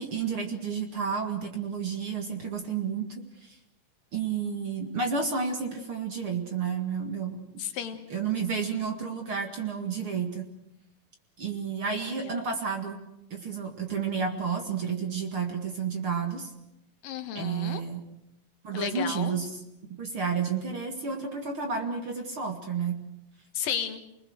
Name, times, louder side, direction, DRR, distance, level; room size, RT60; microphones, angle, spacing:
voice 1, 0.0-3.6 4.1-7.4 8.1-10.5 11.4-13.0 13.3-16.5 17.3-18.0 18.6-19.6 20.0-23.0, right 6 dB, 45° right, 4 dB, 2.4 m, -31 dB
voice 2, 7.6-8.0 12.0-12.1 17.0-17.8 18.7-19.3 23.5-24.0, left 9 dB, 70° left, 8 dB, 2.9 m, -33 dB
29.5 x 20.5 x 6.4 m, 0.84 s
omnidirectional pair, 4.2 m